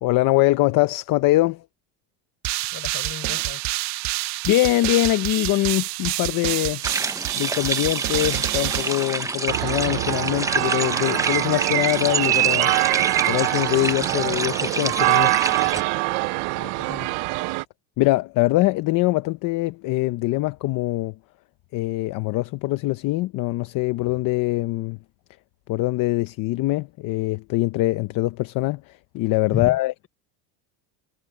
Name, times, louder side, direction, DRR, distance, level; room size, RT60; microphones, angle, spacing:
voice 1, 0.0-1.6 4.5-6.8 7.4-12.7 13.3-15.4 18.0-21.1 21.7-25.0 25.7-30.1, left 18 dB, 45° left, 0.7 m, -23 dB
sound 1, 2.4-9.7, right 19 dB, 40° right, 0.4 m, -28 dB
voice 2, 2.7-3.7 16.5-17.2 29.5-29.8, left 8 dB, 30° left, 6.5 m, -33 dB
sound 2, 6.8-15.8, right 3 dB, 5° right, 0.7 m, -28 dB
sound 3, 9.5-17.6, right 24 dB, 70° right, 0.7 m, -23 dB
cardioid pair, 150°, 44 cm